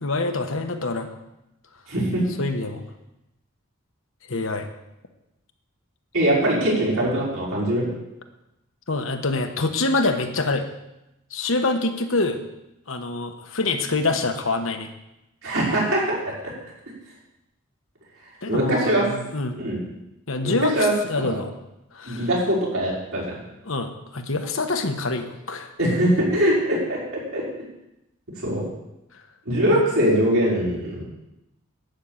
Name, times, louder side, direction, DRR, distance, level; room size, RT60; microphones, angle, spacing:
voice 1, 0.0-1.1 2.4-2.8 4.3-4.7 8.9-10.7 11.3-12.4 12.9-14.9 18.4-19.6 20.3-21.5 21.9-22.3 23.6-25.7 29.7-29.8, left 3 dB, 65° left, 6 dB, 1.2 m, -25 dB
voice 2, 1.9-2.2 6.1-7.8 15.4-16.2 18.5-19.0 19.5-19.8 20.4-21.3 22.0-23.4 25.8-27.4 28.4-28.7 29.5-31.0, right 1 dB, 75° right, -6 dB, 5.4 m, -22 dB
11.5 x 6.4 x 8.7 m, 0.91 s
head